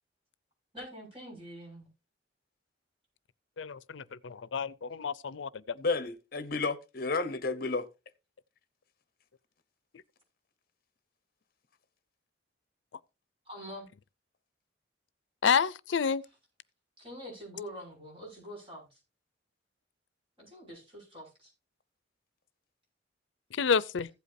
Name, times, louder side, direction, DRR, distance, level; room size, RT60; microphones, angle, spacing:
voice 1, 0.7-1.9 13.4-13.9 17.0-19.0 20.4-21.5, equal, 30° right, 6.7 m, -45 dB
voice 2, 3.6-5.5 15.4-16.2 23.5-24.1, left 6 dB, 80° left, 0.5 m, -29 dB
voice 3, 5.7-7.9, left 3 dB, 50° left, 0.8 m, -31 dB
15.5 x 8.3 x 2.7 m
head